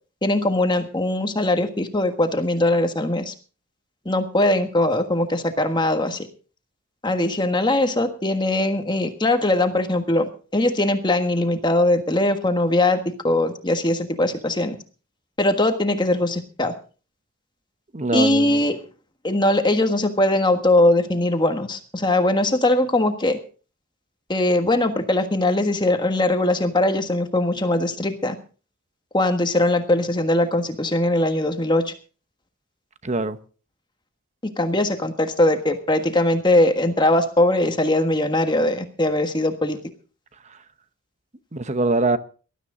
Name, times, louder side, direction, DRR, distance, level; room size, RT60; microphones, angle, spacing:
voice 1, 0.2-3.3 4.0-6.2 7.0-14.8 15.4-16.7 18.1-18.8 19.2-23.4 24.3-28.4 29.1-31.9 34.4-39.8, left 1 dB, 20° left, 1.4 m, -21 dB
voice 2, 17.9-18.6 33.0-33.4 41.5-42.2, right 2 dB, 30° right, 0.9 m, -22 dB
19.5 x 13.0 x 3.9 m
head